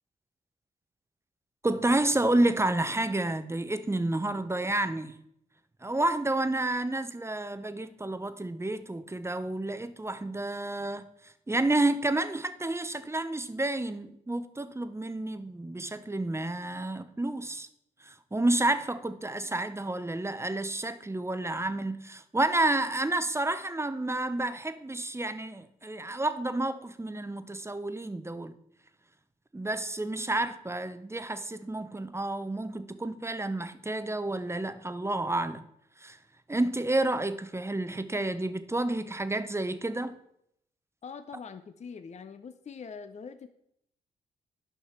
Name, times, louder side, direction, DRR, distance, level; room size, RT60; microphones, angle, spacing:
voice 1, 1.6-5.2 5.8-11.0 11.5-17.7 18.1-28.5 29.5-35.7 36.0-36.2 36.5-40.2, right 2 dB, 15° right, 0.7 m, -30 dB
voice 2, 41.0-43.5, left 5 dB, 40° left, 0.6 m, -43 dB
9.2 x 5.6 x 4.4 m
hypercardioid pair, 40°, 18 cm